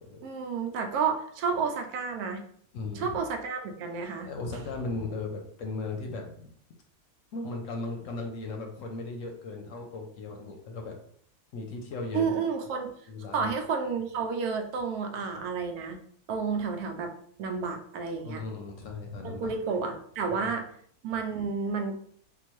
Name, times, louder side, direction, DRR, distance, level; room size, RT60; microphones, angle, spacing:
voice 1, 0.2-2.4 2.9-4.3 12.1-12.9 13.3-16.0 16.3-17.1 17.4-18.4 19.2-20.7 21.0-21.9, right 5 dB, 90° right, 4 dB, 1.1 m, -31 dB
voice 2, 2.7-3.2 4.3-6.5 7.3-11.0 11.5-12.3 13.1-13.5 18.2-19.5 20.3-20.6, left 3 dB, 70° left, 2 dB, 0.9 m, -37 dB
3.7 x 2.6 x 3.0 m, 0.62 s
omnidirectional pair, 1.6 m